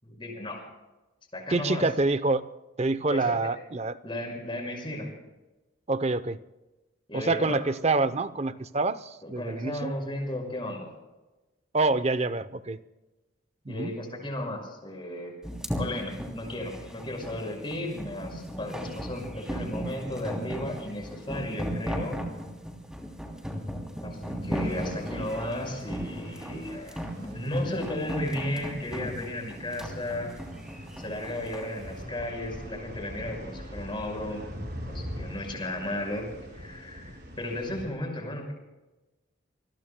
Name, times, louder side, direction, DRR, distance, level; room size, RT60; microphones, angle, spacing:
voice 1, 0.0-0.6 1.3-1.9 3.1-3.3 4.0-5.1 7.1-7.6 9.2-10.9 13.7-15.4 15.8-22.2 24.0-30.3 31.0-34.5 34.8-38.5, left 1 dB, 25° left, 1 dB, 5.8 m, -34 dB
voice 2, 1.5-2.4 2.8-4.0 5.9-6.4 7.1-9.9 11.7-12.8 13.7-13.9, right 3 dB, 35° right, 14 dB, 0.7 m, -26 dB
sound 1, 15.4-31.7, equal, 5° right, 3.0 m, -36 dB
sound 2, 24.6-37.8, equal, 55° right, 5.7 m, -43 dB
28.5 x 21.0 x 2.2 m, 1.1 s
head